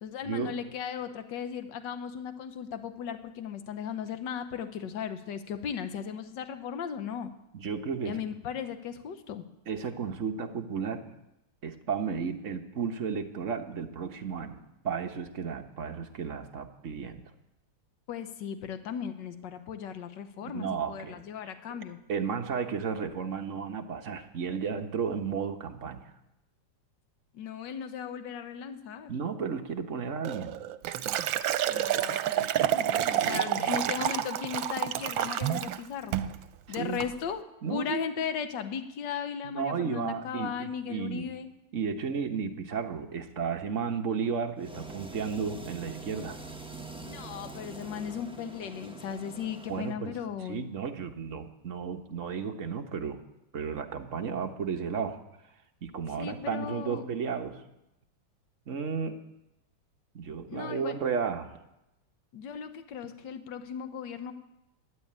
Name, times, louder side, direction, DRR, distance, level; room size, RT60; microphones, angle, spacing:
voice 1, 0.0-7.3 8.0-9.4 18.1-22.0 27.3-29.1 31.6-36.2 36.7-37.4 37.7-41.5 47.0-50.6 56.2-57.1 60.5-61.0 62.3-64.3, left 7 dB, 70° left, 9 dB, 1.6 m, -37 dB
voice 2, 7.5-8.2 9.7-11.0 11.6-17.2 20.4-21.3 22.1-26.1 29.1-30.6 33.2-33.7 36.8-37.0 37.6-38.0 39.4-41.3 41.7-46.4 49.7-50.1 50.5-53.2 53.5-55.2 55.8-57.6 58.7-59.2 60.1-61.5, right 6 dB, 45° right, 5 dB, 1.3 m, -33 dB
Liquid, 30.2-35.8 36.1-36.4 36.7-37.1, right 11 dB, 85° right, 1.4 m, -29 dB
sound 1, 44.6-49.9, right 2 dB, 5° right, 0.5 m, -44 dB
13.0 x 9.9 x 8.7 m, 0.91 s
omnidirectional pair, 2.1 m